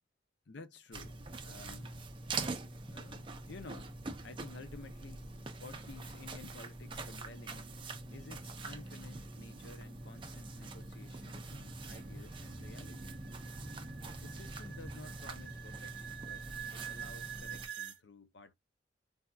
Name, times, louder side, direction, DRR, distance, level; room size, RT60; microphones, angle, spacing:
voice 1, 0.5-2.0 2.9-4.0 4.2-5.3 5.6-7.7 8.1-13.2 14.2-18.5, left 3 dB, 65° left, 0.6 m, -53 dB
sound 1, 0.9-17.7, right 3 dB, 25° right, 0.4 m, -44 dB
sound 2, 10.8-18.0, right 10 dB, 70° right, 0.6 m, -47 dB
3.4 x 2.6 x 2.2 m
head